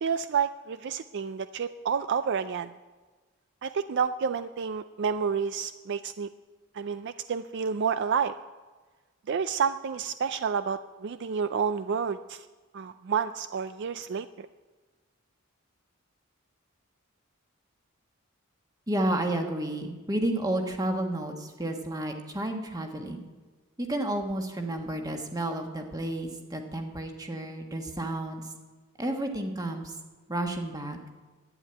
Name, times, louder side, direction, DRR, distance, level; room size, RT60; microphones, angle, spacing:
voice 1, 0.0-2.7 3.6-6.3 6.7-8.3 9.3-12.5 12.7-14.5, right 6 dB, 55° right, 12 dB, 0.4 m, -29 dB
voice 2, 18.9-23.2 23.8-28.4 29.0-29.9 30.3-31.0, right 1 dB, 15° right, 4 dB, 1.4 m, -31 dB
11.0 x 9.2 x 9.6 m, 1.3 s
head